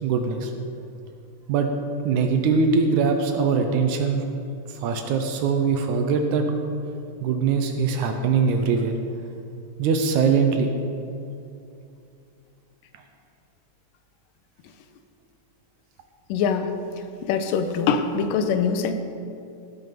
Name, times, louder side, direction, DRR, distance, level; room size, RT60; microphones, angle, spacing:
voice 1, 0.0-0.5 1.5-1.7 2.0-4.2 4.7-6.5 7.2-8.9 9.8-10.7, right 5 dB, 75° right, 5 dB, 1.9 m, -22 dB
voice 2, 16.3-16.8 17.2-18.9, left 6 dB, 85° left, 8 dB, 2.4 m, -23 dB
16.5 x 6.2 x 5.2 m, 2.6 s
omnidirectional pair, 3.8 m